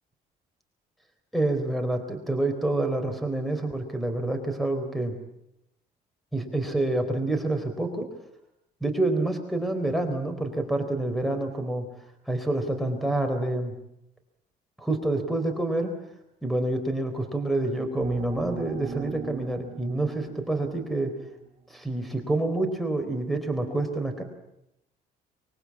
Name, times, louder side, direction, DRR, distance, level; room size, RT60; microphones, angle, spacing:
voice 1, 1.3-5.1 6.3-8.1 8.8-11.9 12.3-13.7 14.8-15.9 16.4-21.1 21.7-24.2, right 2 dB, ahead, 8 dB, 4.0 m, -27 dB
sound 1, 18.0-21.5, right 8 dB, 40° right, 3.3 m, -41 dB
24.5 x 22.5 x 8.6 m, 0.84 s
cardioid pair, 110°, 17 cm